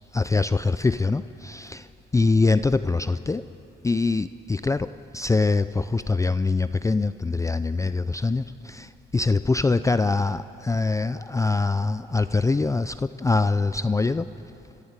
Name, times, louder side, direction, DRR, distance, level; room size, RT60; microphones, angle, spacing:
voice 1, 0.1-3.5 3.8-14.3, left 3 dB, 15° left, 13 dB, 0.4 m, -24 dB
30.0 x 12.0 x 8.9 m, 2.9 s
cardioid pair, 90°, 20 cm